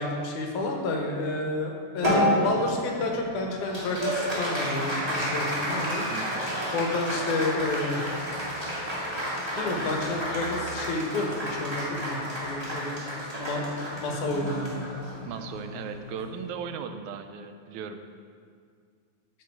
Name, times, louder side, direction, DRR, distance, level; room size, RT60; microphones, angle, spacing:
voice 1, 0.0-6.1 6.7-8.0 9.6-13.0 13.4-13.7 14.0-14.7, left 2 dB, 80° left, 1 dB, 2.8 m, -30 dB
Applause, 2.0-16.7, equal, 15° right, 1.7 m, -31 dB
sound 1, 3.7-6.9, right 1 dB, 30° left, 2.2 m, -48 dB
voice 2, 6.1-6.4 15.3-18.0, right 6 dB, 80° right, 8 dB, 2.0 m, -37 dB
13.5 x 7.2 x 4.7 m, 2.1 s
omnidirectional pair, 3.4 m